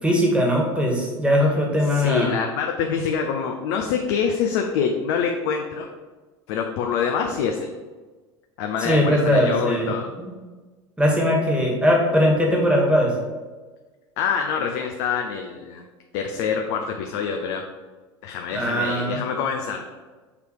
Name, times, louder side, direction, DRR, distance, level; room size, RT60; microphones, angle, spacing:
voice 1, 0.0-2.3 8.8-9.9 10.2-10.3 11.0-13.1 18.5-19.2, equal, 5° right, -1 dB, 1.9 m, -20 dB
voice 2, 1.8-5.9 6.5-7.7 8.6-10.1 14.2-15.8 16.1-17.6 18.2-19.8, left 6 dB, 60° left, 3 dB, 0.6 m, -25 dB
6.7 x 3.3 x 4.7 m, 1.3 s
hypercardioid pair, 75°, 14 cm